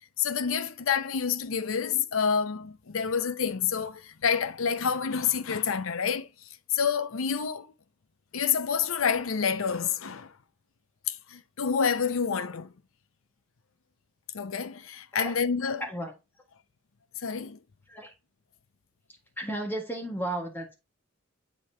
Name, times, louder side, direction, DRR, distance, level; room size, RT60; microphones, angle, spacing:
voice 1, 0.2-6.3 6.7-7.7 8.3-10.3 11.1-12.7 14.3-15.8 17.2-17.6, left 6 dB, 80° left, 0.6 m, -28 dB
voice 2, 15.6-16.1 17.9-18.1 19.4-20.7, right 1 dB, 10° left, 1.7 m, -34 dB
7.8 x 5.2 x 2.8 m
head